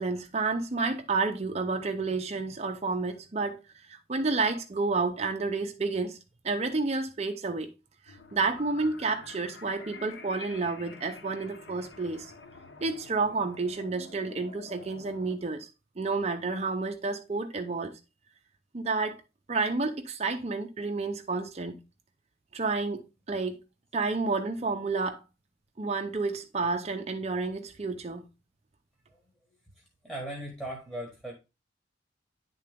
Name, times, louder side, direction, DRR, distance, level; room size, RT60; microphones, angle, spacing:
voice 1, 0.0-3.6 3.9-6.2 6.4-7.7 8.1-12.3 12.8-15.7 16.0-17.9 18.7-19.2 19.5-21.8 22.5-23.6 23.9-25.2 25.8-28.2, right 3 dB, 35° right, 0.5 m, -30 dB
sound 1, 8.1-15.4, left 3 dB, 65° left, 0.8 m, -48 dB
voice 2, 30.0-31.3, right 1 dB, 5° left, 1.2 m, -37 dB
9.5 x 3.8 x 3.4 m
head